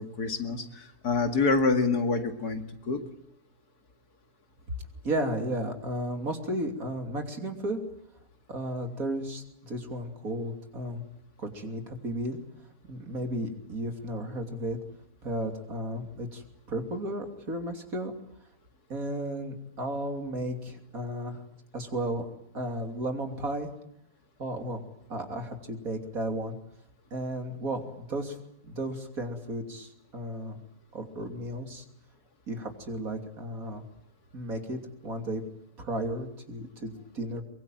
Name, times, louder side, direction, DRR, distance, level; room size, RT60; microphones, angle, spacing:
voice 1, 0.0-3.0, left 4 dB, 85° left, 6 dB, 2.8 m, -27 dB
voice 2, 5.0-7.8 8.5-11.0 11.4-12.4 12.9-14.8 15.2-18.1 18.9-21.4 21.7-22.3 22.5-23.7 24.4-24.8 25.1-26.6 27.1-28.4 28.6-30.6 30.9-31.8 32.5-33.8 34.3-35.4 35.8-37.4, right 1 dB, 65° right, 4 dB, 3.5 m, -34 dB
23.0 x 23.0 x 9.2 m, 0.78 s
omnidirectional pair, 1.6 m